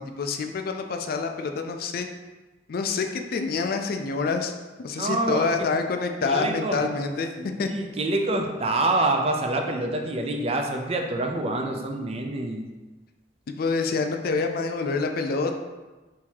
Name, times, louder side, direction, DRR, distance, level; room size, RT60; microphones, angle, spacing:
voice 1, 0.0-2.1 2.7-4.5 4.8-7.7 13.5-15.5, left 4 dB, 55° left, 5 dB, 0.4 m, -27 dB
voice 2, 5.0-5.5 6.3-6.8 7.4-12.6, right 2 dB, 35° right, 3 dB, 0.5 m, -26 dB
3.6 x 2.7 x 4.5 m, 1.2 s
head